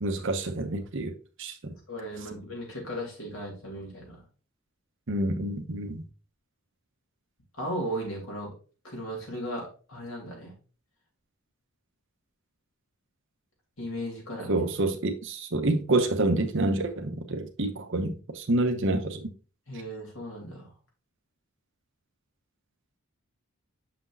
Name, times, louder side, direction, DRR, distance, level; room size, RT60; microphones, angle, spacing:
voice 1, 0.0-1.1 1.4-1.6 5.1-6.0 14.5-19.3, right 2 dB, 55° right, 0.9 m, -27 dB
voice 2, 1.9-4.2 7.6-8.5 8.8-10.5 13.8-14.5 19.7-20.7, equal, 65° left, 3.2 m, -36 dB
6.8 x 5.9 x 2.5 m
head